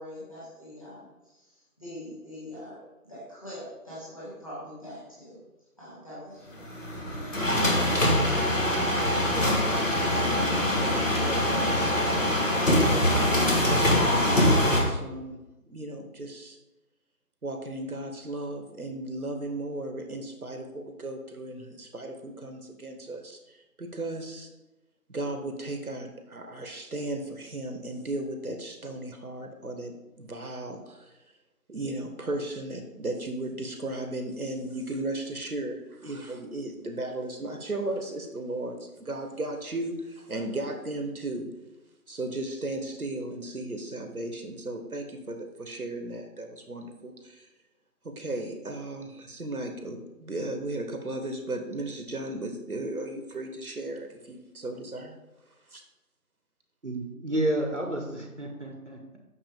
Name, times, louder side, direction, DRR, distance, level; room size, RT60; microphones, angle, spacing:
voice 1, 0.0-5.4 5.8-6.7, left 1 dB, 20° left, -10 dB, 2.2 m, -43 dB
sound 1, 6.6-14.8, left 1 dB, 55° left, 1.6 m, -23 dB
voice 2, 9.0-16.6 17.4-24.5 25.1-31.1 31.7-41.5 42.1-47.5 48.0-55.2 55.7-55.8, right 2 dB, 70° right, 5 dB, 1.1 m, -36 dB
voice 3, 56.8-59.2, right 1 dB, 50° right, 2 dB, 1.0 m, -30 dB
6.3 x 6.1 x 3.5 m, 1.0 s
figure-of-eight pair, 175°, 46 cm